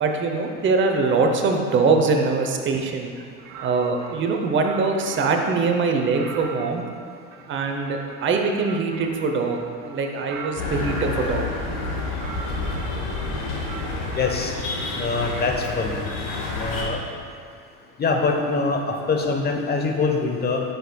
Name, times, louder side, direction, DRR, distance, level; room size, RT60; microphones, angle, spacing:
voice 1, 0.0-3.2 3.6-6.8 7.5-11.5, right 4 dB, 30° right, 3 dB, 0.7 m, -23 dB
sound 1, 3.4-5.5 6.0-11.1 11.7-13.3 13.6-15.6, right 5 dB, 70° right, 0.7 m, -41 dB
sound 2, 10.6-16.8, left 3 dB, 65° left, 1.4 m, -29 dB
voice 2, 14.1-14.5 14.9-16.0 16.6-17.0 18.0-20.6, left 4 dB, 25° left, 2 dB, 0.9 m, -24 dB
10.0 x 5.2 x 2.2 m, 2.2 s
hypercardioid pair, 80°, 41 cm